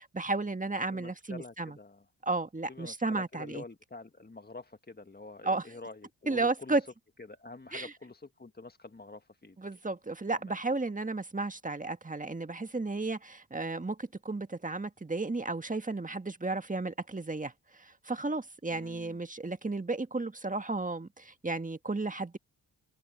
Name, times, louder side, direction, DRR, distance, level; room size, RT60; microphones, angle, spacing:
voice 1, 0.0-1.8 2.2-3.6 5.4-5.7 6.3-6.8 7.7-7.9 9.6-22.4, right 3 dB, 15° right, 1.6 m, -33 dB
voice 2, 0.9-2.0 2.7-6.8 7.3-9.6 10.4-10.5 18.7-19.2, left 3 dB, 20° left, 1.5 m, -47 dB
supercardioid pair, 45°, 47 cm